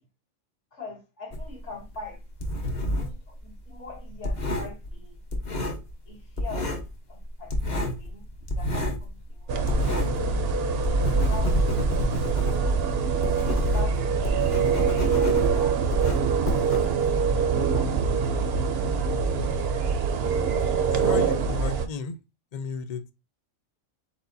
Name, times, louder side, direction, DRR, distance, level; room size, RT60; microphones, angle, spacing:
voice 1, 0.7-2.2 2.9-5.2 6.1-6.8 7.1-8.2 8.6-12.0 12.3-12.8 13.7-14.8 15.2-15.8 16.8-17.1 17.4-19.5, left 2 dB, 55° left, 1.8 m, -44 dB
sound 1, 1.3-3.2 3.5-6.1 6.3-6.9 7.2-10.3 10.6-17.3, left 1 dB, 35° left, 1.0 m, -29 dB
sound 2, 9.5-21.9, right 5 dB, 55° right, 0.7 m, -24 dB
voice 2, 20.9-22.2 22.5-23.0, left 6 dB, 85° left, 0.3 m, -34 dB
4.4 x 4.3 x 2.6 m
omnidirectional pair, 1.5 m